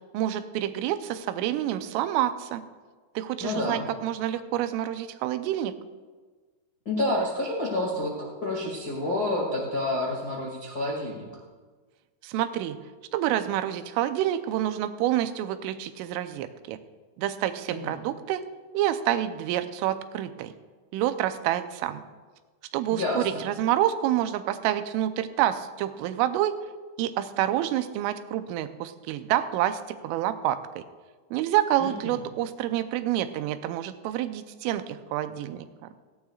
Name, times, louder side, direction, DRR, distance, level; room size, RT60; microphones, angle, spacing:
voice 1, 0.1-2.6 3.2-5.8 12.2-12.8 13.1-16.8 17.2-18.4 18.7-20.5 20.9-22.0 22.7-26.5 27.0-30.8 31.3-35.6, right 12 dB, 90° right, 10 dB, 3.2 m, -28 dB
voice 2, 3.4-3.9 6.8-11.3 17.7-17.8 22.9-23.4 31.8-32.2, left 1 dB, 60° left, -5 dB, 0.9 m, -29 dB
18.5 x 15.5 x 2.4 m, 1.4 s
omnidirectional pair, 5.6 m